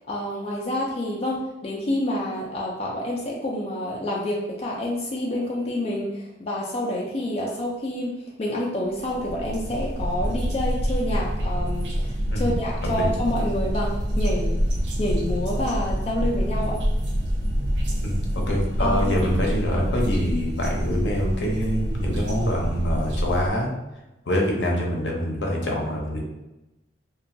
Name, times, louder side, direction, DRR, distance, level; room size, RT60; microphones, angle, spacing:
voice 1, 0.1-14.6 15.0-16.8 18.8-19.1, left 1 dB, 35° left, -4 dB, 0.3 m, -28 dB
sound 1, 9.0-23.5, equal, 70° right, 0.5 m, -26 dB
voice 2, 18.0-23.7 24.3-26.2, equal, 70° left, 0 dB, 0.6 m, -25 dB
2.8 x 2.2 x 2.5 m, 0.98 s
head